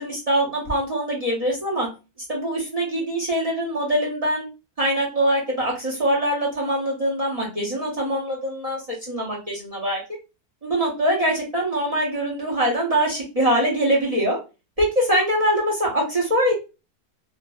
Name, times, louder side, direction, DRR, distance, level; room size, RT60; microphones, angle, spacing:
voice 1, 0.0-1.9 2.3-4.5 4.8-10.0 10.6-14.4 14.8-16.5, equal, 40° right, -4 dB, 0.5 m, -23 dB
2.5 x 2.5 x 2.2 m, 0.29 s
omnidirectional pair, 1.7 m